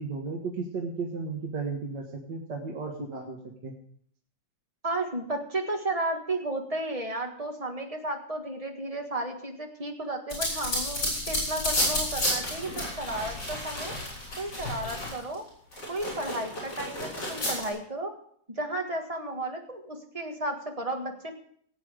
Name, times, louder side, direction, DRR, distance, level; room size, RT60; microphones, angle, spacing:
voice 1, 0.0-3.8, right 4 dB, 65° right, 0 dB, 2.0 m, -34 dB
voice 2, 4.8-13.9 14.4-15.5 15.9-18.1 18.6-21.3, right 2 dB, 20° right, 3 dB, 1.6 m, -33 dB
sound 1, 10.3-15.3 15.7-17.7, left 1 dB, 65° left, 7.1 m, -31 dB
18.0 x 8.3 x 5.0 m, 0.62 s
omnidirectional pair, 2.0 m